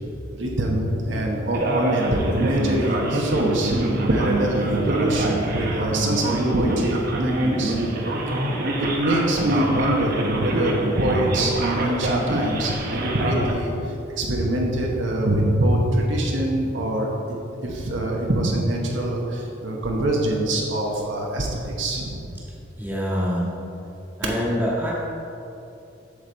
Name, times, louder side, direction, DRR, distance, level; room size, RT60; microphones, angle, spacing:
voice 1, 0.3-3.7 4.1-7.8 8.8-13.7 14.2-17.2 17.6-22.2, right 1 dB, 70° right, -1 dB, 1.1 m, -24 dB
Male speech man speaking, 1.5-13.5, right 1 dB, 45° right, 0.9 m, -25 dB
voice 2, 22.8-23.5 24.2-24.9, equal, 10° right, -6 dB, 1.6 m, -25 dB
7.9 x 7.3 x 4.0 m, 2.8 s
head